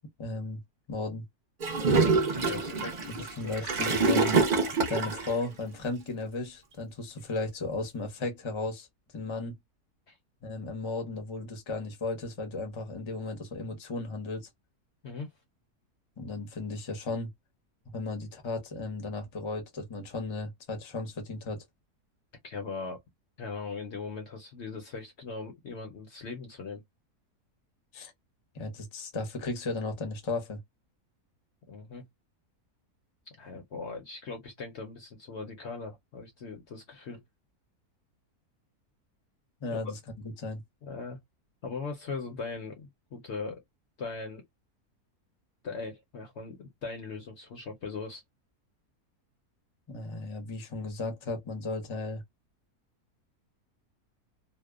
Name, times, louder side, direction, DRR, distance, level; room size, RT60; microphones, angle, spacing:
voice 1, 0.2-0.6 0.9-1.2 3.2-4.4 4.9-8.9 9.1-9.5 10.4-14.5 16.2-17.3 17.9-21.6 27.9-28.1 28.5-30.6 39.6-40.6 49.9-52.2, left 3 dB, 30° left, 0.6 m, -35 dB
Gurgling / Toilet flush, 1.6-5.3, right 4 dB, 50° right, 0.6 m, -26 dB
voice 2, 2.4-3.7 10.1-10.2 15.0-15.3 22.4-23.0 23.4-26.8 31.7-32.0 33.3-37.2 39.7-39.8 40.8-41.2 41.6-43.6 44.0-44.4 45.6-48.2, left 4 dB, 55° left, 0.8 m, -39 dB
2.7 x 2.1 x 2.3 m
omnidirectional pair, 1.6 m